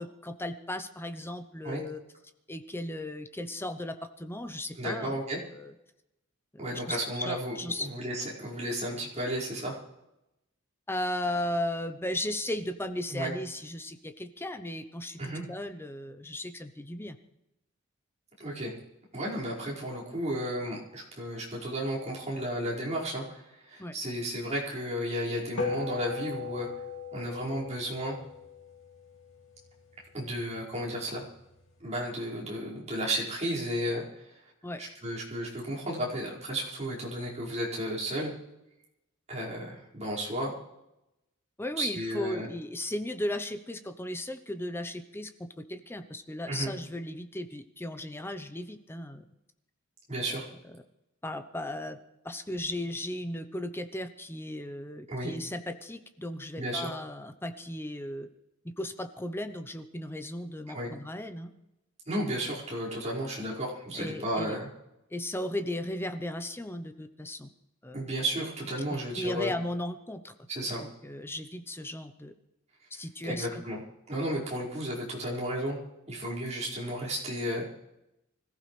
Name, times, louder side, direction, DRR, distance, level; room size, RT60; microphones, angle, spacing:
voice 1, 0.0-2.0 2.5-5.7 6.5-7.9 10.9-17.2 23.8-23.9 34.6-34.8 41.6-49.3 50.3-50.4 51.2-52.0 52.2-58.3 58.8-61.5 63.9-64.6 65.1-67.5 67.8-68.0 68.9-70.3 70.8-72.3 72.9-73.6, left 1 dB, 10° left, 8 dB, 0.8 m, -36 dB
voice 2, 4.7-5.4 6.6-9.8 13.1-13.3 15.2-15.4 18.4-18.7 19.1-26.7 27.1-28.2 30.1-31.2 31.8-34.0 34.8-38.3 39.3-40.5 41.8-42.5 46.5-46.7 50.1-50.4 55.1-55.3 56.5-56.9 60.7-60.9 62.1-64.7 67.9-69.5 70.5-70.8 72.9-73.8 74.1-75.8 76.1-77.7, equal, 35° right, -6 dB, 5.3 m, -33 dB
sound 1, 25.6-30.2, left 4 dB, 65° left, 2.7 m, -38 dB
25.5 x 15.0 x 3.3 m, 0.91 s
head